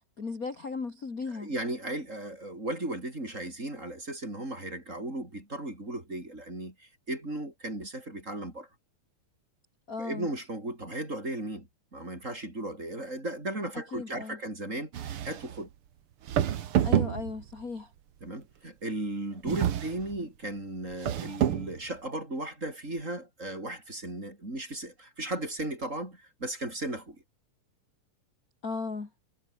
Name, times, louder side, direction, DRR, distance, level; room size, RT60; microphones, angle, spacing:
voice 1, 0.2-1.5 9.9-10.3 13.9-14.4 16.8-17.9 28.6-29.1, left 4 dB, 30° left, 2.6 m, -36 dB
voice 2, 1.3-8.7 10.0-15.7 18.2-27.2, right 1 dB, 20° right, 5.9 m, -36 dB
sound 1, 14.9-15.6 16.3-17.6 19.5-20.2 20.9-21.8, right 10 dB, 55° right, 1.6 m, -28 dB
omnidirectional pair, 3.9 m